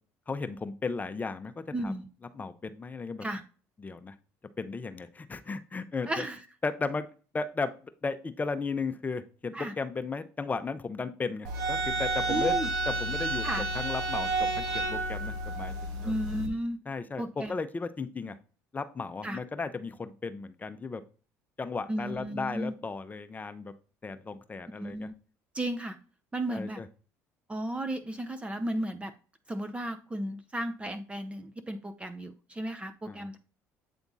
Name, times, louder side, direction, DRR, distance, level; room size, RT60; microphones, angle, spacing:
voice 1, 0.3-1.9 2.3-3.2 3.8-4.1 4.6-6.2 6.6-7.1 7.3-7.7 8.0-12.5 12.9-13.5 13.7-16.1 16.9-18.4 18.7-21.0 21.6-23.7 24.0-25.1 26.5-26.7 33.1-33.3, left 4 dB, 25° left, 10 dB, 0.6 m, -35 dB
voice 2, 1.7-2.1 3.2-3.4 6.1-6.4 9.5-9.7 12.3-12.7 13.4-13.7 16.0-16.8 17.2-17.5 19.2-19.4 21.9-22.7 24.7-25.1 25.5-26.0 26.3-26.8 27.5-29.1 29.5-33.4, right 1 dB, 15° right, 9 dB, 0.6 m, -34 dB
sound 1, 11.4-16.5, right 2 dB, 80° right, 1.5 m, -30 dB
8.3 x 3.5 x 4.0 m, 0.38 s
supercardioid pair, 85°, 7 cm